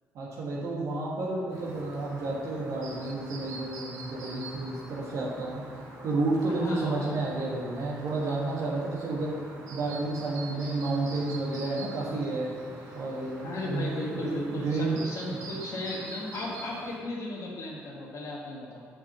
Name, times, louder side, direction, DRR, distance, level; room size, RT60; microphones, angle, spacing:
voice 1, 0.1-5.6 6.0-9.3 9.7-12.5 12.9-15.0 15.3-15.4, right 2 dB, 70° right, -5 dB, 1.6 m, -31 dB
Chirp tweet, 1.5-17.0, right 2 dB, 85° right, 1.7 m, -45 dB
voice 2, 6.6-7.2 13.4-18.8, left 2 dB, 60° left, -4 dB, 1.4 m, -35 dB
5.8 x 5.4 x 6.8 m, 2.2 s
supercardioid pair, 70°, 6 cm